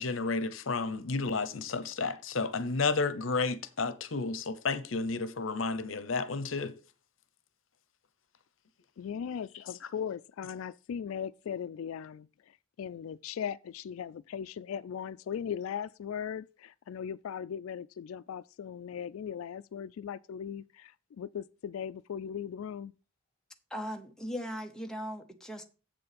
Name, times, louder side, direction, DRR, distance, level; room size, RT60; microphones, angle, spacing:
voice 1, 0.0-6.7, left 4 dB, 75° left, 0.8 m, -31 dB
voice 2, 9.0-12.3 12.8-22.9, left 8 dB, 90° left, 0.3 m, -38 dB
voice 3, 23.7-25.6, equal, 5° left, 0.9 m, -38 dB
7.7 x 7.0 x 5.1 m
head